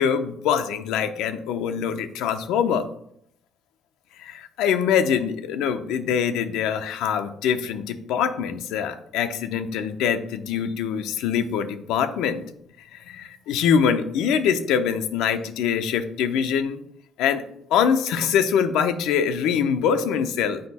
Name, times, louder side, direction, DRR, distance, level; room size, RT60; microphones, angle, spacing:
voice 1, 0.0-2.9 4.2-12.4 12.9-16.8 17.2-17.4 17.7-20.6, left 7 dB, 85° left, 9 dB, 0.6 m, -24 dB
6.5 x 4.8 x 4.1 m, 0.72 s
cardioid pair, 180°, 0 cm